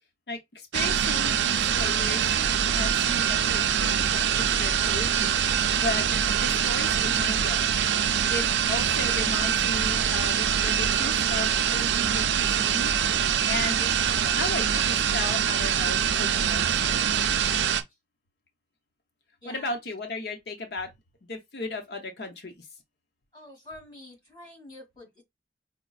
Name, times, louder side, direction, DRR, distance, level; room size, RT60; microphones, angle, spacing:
voice 1, 0.3-2.3 2.7-6.0 6.3-7.7 8.3-12.9 13.2-13.9 14.3-17.1 19.4-20.9 21.3-22.7, left 2 dB, 70° left, 0.8 m, -35 dB
sound 1, 0.7-17.8, right 8 dB, 85° right, 0.4 m, -24 dB
voice 2, 19.4-19.8 23.3-25.2, left 1 dB, 25° left, 2.4 m, -48 dB
5.1 x 2.1 x 2.3 m
head